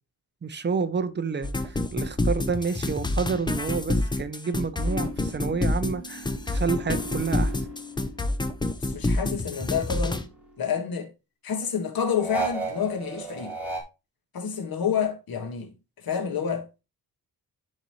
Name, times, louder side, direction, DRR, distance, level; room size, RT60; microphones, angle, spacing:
voice 1, 0.4-7.6, right 5 dB, 30° right, 0.6 m, -29 dB
sound 1, 1.4-10.2, left 2 dB, 10° left, 0.5 m, -27 dB
sound 2, 4.8-8.7 9.1-10.7 12.2-13.8, right 2 dB, 5° right, 2.1 m, -36 dB
voice 2, 8.7-10.2 10.6-11.1 11.4-13.6 14.3-15.7 16.0-16.8, left 7 dB, 65° left, 1.6 m, -29 dB
10.5 x 4.2 x 3.1 m
wide cardioid pair, 175°, 38 cm